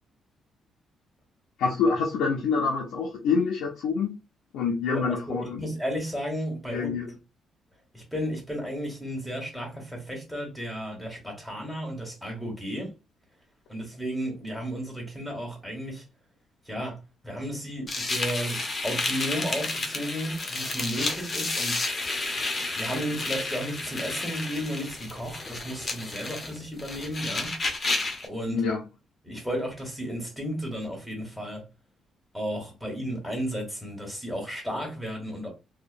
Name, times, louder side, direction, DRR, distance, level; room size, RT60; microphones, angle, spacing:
voice 1, 1.6-4.2 4.5-5.7 6.7-7.1 28.5-28.8, left 5 dB, 90° left, 0.5 m, -26 dB
voice 2, 4.9-6.9 7.9-12.9 13.7-16.0 16.7-17.0 17.2-18.6 18.8-21.8 22.7-27.5 28.2-28.6 29.2-31.6 32.3-35.5, equal, 5° left, 1.4 m, -33 dB
sound 1, 17.9-28.3, left 2 dB, 35° left, 0.6 m, -31 dB
2.7 x 2.1 x 2.5 m
cardioid pair, 90°, 0 cm